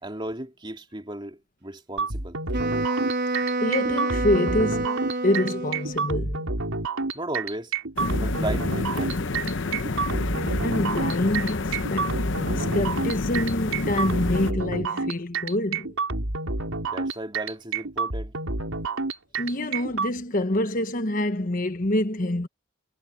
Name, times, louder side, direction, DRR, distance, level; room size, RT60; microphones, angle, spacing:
voice 1, 0.0-2.4 7.1-7.7 8.2-9.3 16.8-18.3, right 1 dB, 25° right, 3.1 m, -35 dB
sound 1, 2.0-20.1, right 3 dB, 90° right, 3.5 m, -29 dB
Wind instrument woodwind instrument, 2.5-6.1, right 2 dB, 55° right, 1.6 m, -28 dB
voice 2, 3.6-6.6 10.6-12.2 12.6-15.9 19.4-22.5, left 1 dB, 40° left, 1.2 m, -26 dB
sound 2, 8.0-14.5, left 3 dB, 60° left, 0.9 m, -28 dB
head